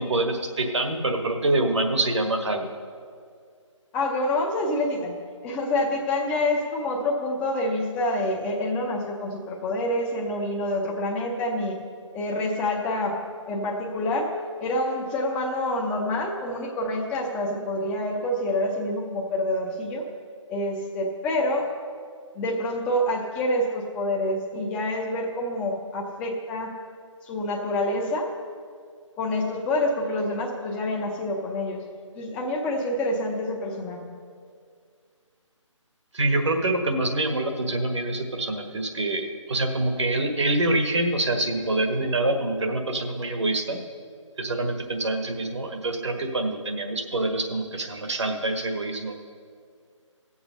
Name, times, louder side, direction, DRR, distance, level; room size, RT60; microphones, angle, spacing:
voice 1, 0.0-2.7 36.1-43.8 44.4-49.1, right 2 dB, 60° right, 4 dB, 1.5 m, -26 dB
voice 2, 3.9-5.2 5.4-11.8 12.1-13.2 13.5-14.3 14.6-20.1 20.5-21.7 22.3-26.7 27.2-28.3 29.2-31.8 32.1-34.2, left 1 dB, 5° left, 0 dB, 0.6 m, -27 dB
16.0 x 7.2 x 5.4 m, 2.2 s
figure-of-eight pair, 155°, 16 cm